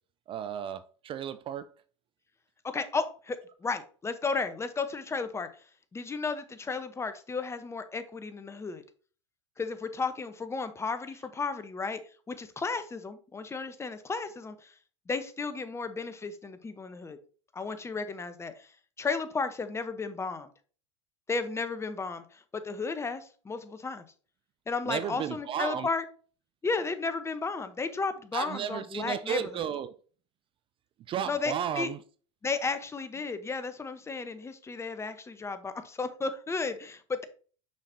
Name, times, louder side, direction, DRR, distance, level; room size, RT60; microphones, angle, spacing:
voice 1, 0.3-1.7 24.9-25.9 28.3-30.0 31.0-32.0, right 9 dB, 35° right, 0.4 m, -34 dB
voice 2, 2.6-5.5 5.9-8.8 9.6-12.0 12.3-14.7 15.1-17.2 17.5-18.7 19.0-20.5 21.3-24.0 24.7-26.0 26.6-29.4 31.3-31.9 32.4-37.2, left 4 dB, 15° left, 0.8 m, -33 dB
6.4 x 5.9 x 2.7 m
hypercardioid pair, 85°, 15 cm